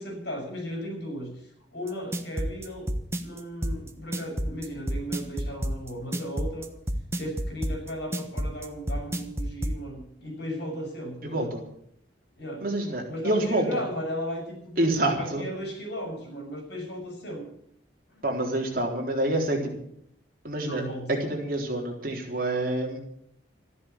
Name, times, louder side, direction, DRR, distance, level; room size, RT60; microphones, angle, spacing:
voice 1, 0.0-2.9 3.2-6.7 7.1-11.5 12.3-12.6 13.1-14.9 15.2-17.4 18.1-18.2 20.6-21.1, equal, 65° left, 2 dB, 6.6 m, -36 dB
sound 1, 1.9-9.8, equal, 15° right, 1.1 m, -29 dB
voice 2, 11.2-11.6 12.6-13.8 14.8-15.4 18.2-19.6 20.4-20.8 21.1-23.0, right 1 dB, 50° right, 0 dB, 3.8 m, -27 dB
14.0 x 11.0 x 8.3 m, 0.70 s
head